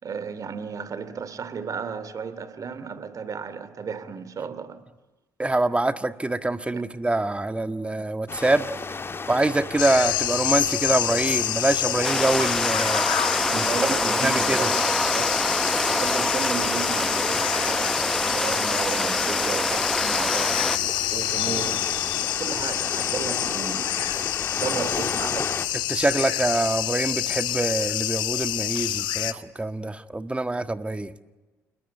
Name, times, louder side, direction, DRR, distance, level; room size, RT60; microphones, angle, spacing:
voice 1, 0.0-4.8 6.7-6.9 13.5-15.3 15.8-21.9 22.4-24.1 24.5-25.6, right 6 dB, 45° right, 2.8 m, -34 dB
voice 2, 5.4-8.7 9.3-13.0 14.2-14.7 25.9-31.1, right 2 dB, 15° right, 1.7 m, -25 dB
sound 1, 8.3-25.7, left 4 dB, 30° left, 1.8 m, -35 dB
sound 2, 9.8-29.3, left 14 dB, 65° left, 1.2 m, -27 dB
Heavy Rain, 12.0-20.8, left 1 dB, 5° left, 1.0 m, -26 dB
28.0 x 21.5 x 9.5 m
hypercardioid pair, 50°, 8 cm